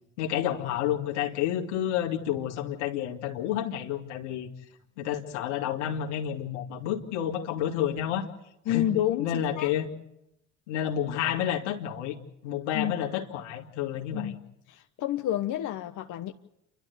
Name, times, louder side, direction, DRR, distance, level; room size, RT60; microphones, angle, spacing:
voice 1, 0.2-4.5 5.0-8.3 8.7-8.8 9.2-9.9 10.7-12.1 12.4-14.3, left 10 dB, 90° left, 1 dB, 2.4 m, -30 dB
voice 2, 8.7-9.7 12.7-12.9 14.1-14.4 14.7-16.3, left 12 dB, 60° left, 5 dB, 1.1 m, -29 dB
29.0 x 12.5 x 8.3 m, 0.85 s
hypercardioid pair, 70°, 34 cm